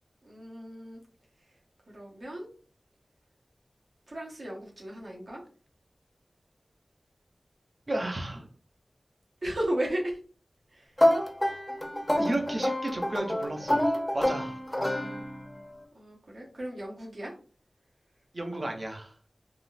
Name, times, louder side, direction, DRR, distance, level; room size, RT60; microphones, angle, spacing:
voice 1, 0.2-1.0 1.9-2.5 4.1-5.4 9.4-10.2 10.7-10.9 14.9-15.3 15.9-17.3, right 1 dB, 70° right, -3 dB, 1.0 m, -35 dB
voice 2, 7.9-8.5 11.0-11.1 12.2-14.6 18.3-19.1, right 1 dB, 40° right, 3 dB, 0.7 m, -33 dB
sound 1, 11.0-15.6, left 1 dB, 15° left, 0.7 m, -27 dB
3.6 x 2.4 x 2.5 m, 0.40 s
wide cardioid pair, 75°, 0 cm